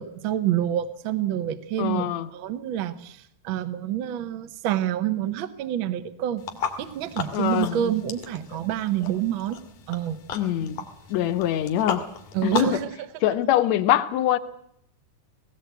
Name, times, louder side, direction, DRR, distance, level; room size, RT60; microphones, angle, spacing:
voice 1, 0.0-6.4 6.8-9.6 9.9-10.2 10.8-10.9 12.3-12.9, right 11 dB, 60° right, 12 dB, 1.3 m, -27 dB
voice 2, 1.8-2.3 7.3-7.8 10.3-10.8 11.1-12.1 12.4-12.8 13.2-14.4, left 12 dB, 70° left, 12 dB, 2.0 m, -23 dB
sound 1, 6.4-12.8, left 6 dB, 90° left, 3.3 m, -35 dB
18.0 x 18.0 x 8.1 m, 0.75 s
omnidirectional pair, 3.5 m